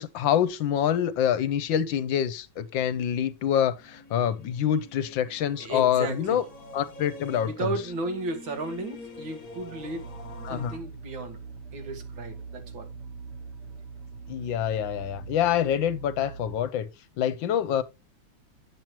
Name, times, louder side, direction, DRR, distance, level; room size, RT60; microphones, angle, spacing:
voice 1, 0.0-6.4 6.7-7.7 10.4-10.7 14.3-16.9 17.2-17.8, left 9 dB, 80° left, 1.5 m, -26 dB
sound 1, 3.7-10.8, left 3 dB, 50° left, 1.9 m, -46 dB
voice 2, 5.6-6.4 7.4-10.1 10.5-11.4 11.7-12.9, right 2 dB, 80° right, 2.3 m, -34 dB
sound 2, 9.6-16.6, right 4 dB, 55° right, 0.7 m, -42 dB
8.8 x 7.5 x 3.0 m
omnidirectional pair, 2.1 m